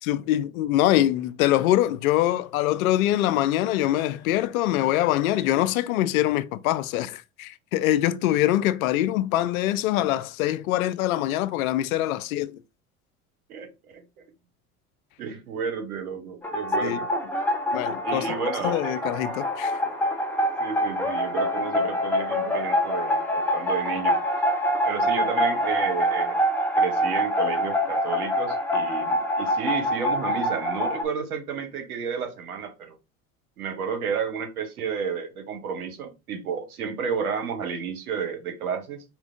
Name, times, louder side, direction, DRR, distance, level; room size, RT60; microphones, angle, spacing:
voice 1, 0.0-12.6 16.8-17.0 17.7-18.3 18.6-19.8, left 13 dB, 70° left, 0.5 m, -24 dB
voice 2, 13.5-14.0 15.2-17.1 18.0-19.0 19.8-19.9 20.6-24.2 24.8-26.4 26.8-32.9 33.6-39.0, right 6 dB, 80° right, 1.0 m, -32 dB
sound 1, 16.4-31.0, equal, 5° left, 1.0 m, -25 dB
4.4 x 2.4 x 3.6 m
hypercardioid pair, 70°, 43 cm